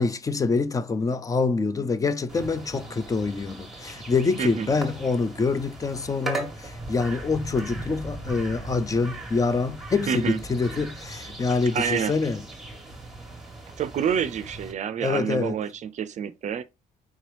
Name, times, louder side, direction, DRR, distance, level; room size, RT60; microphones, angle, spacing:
voice 1, 0.0-12.4 15.0-15.6, left 4 dB, 20° left, 0.4 m, -26 dB
sound 1, 2.3-14.7, right 2 dB, ahead, 1.3 m, -38 dB
voice 2, 10.1-10.4 11.7-12.1 13.8-16.6, right 8 dB, 45° right, 0.5 m, -28 dB
4.6 x 2.9 x 3.3 m
cardioid pair, 110°, 17 cm